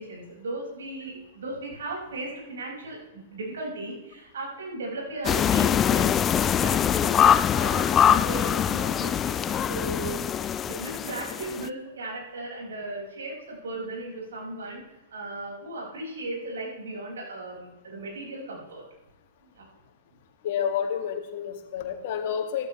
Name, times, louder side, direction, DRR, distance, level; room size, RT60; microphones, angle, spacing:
voice 1, 0.0-10.3 10.7-14.8 15.1-18.8 19.4-19.7, right 2 dB, 70° right, -2 dB, 5.5 m, -36 dB
sound 1, 5.2-11.7, left 9 dB, 25° left, 0.4 m, -23 dB
voice 2, 20.4-22.7, left 8 dB, 50° left, 5 dB, 1.9 m, -29 dB
14.0 x 13.5 x 3.2 m, 1.0 s
figure-of-eight pair, 105°, 0 cm